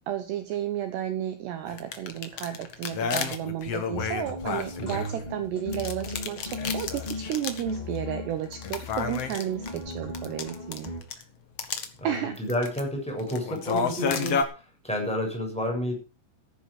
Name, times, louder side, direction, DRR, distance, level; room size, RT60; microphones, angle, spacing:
voice 1, 0.1-10.9 12.0-12.3, right 11 dB, 70° right, 8 dB, 3.0 m, -32 dB
sound 1, 1.7-5.3 5.7-7.7 8.0-8.1 8.5-11.2 11.6-11.9 12.4-12.8 13.2-14.4, left 6 dB, 75° left, 1.4 m, -31 dB
sound 2, 3.9-11.0, left 2 dB, 25° left, 1.0 m, -37 dB
voice 2, 12.5-15.9, left 1 dB, ahead, 2 dB, 6.8 m, -30 dB
14.5 x 11.5 x 5.0 m, 0.31 s
omnidirectional pair, 5.6 m